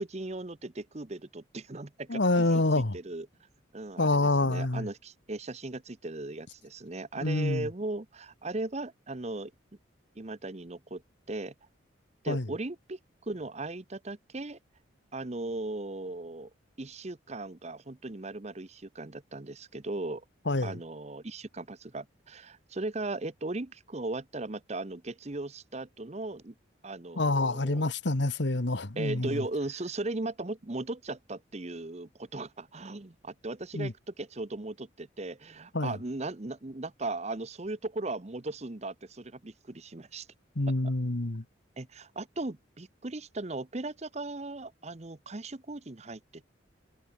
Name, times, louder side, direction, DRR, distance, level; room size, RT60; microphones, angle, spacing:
voice 1, 0.0-3.3 3.7-9.5 10.2-11.0 11.3-11.5 12.2-14.6 15.1-16.5 16.8-20.2 20.6-26.5 26.8-27.9 29.0-40.3 41.8-46.4, right 2 dB, 35° right, 0.9 m, -37 dB
voice 2, 2.1-3.0 4.0-4.9 7.2-7.7 12.3-12.4 20.5-20.7 27.2-29.4 33.7-33.9 35.7-35.9 40.6-41.4, left 2 dB, 65° left, 1.4 m, -27 dB
head